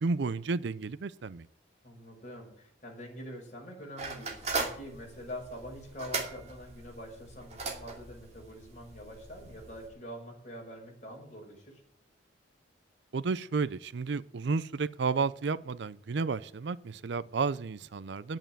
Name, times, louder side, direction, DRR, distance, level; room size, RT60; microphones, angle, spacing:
voice 1, 0.0-1.5 13.1-18.4, right 4 dB, 65° right, 18 dB, 0.5 m, -32 dB
voice 2, 1.8-11.8, equal, 40° left, -1 dB, 5.5 m, -45 dB
sound 1, 4.0-9.9, right 3 dB, 35° right, 2.6 m, -39 dB
10.5 x 9.1 x 8.8 m, 0.65 s
head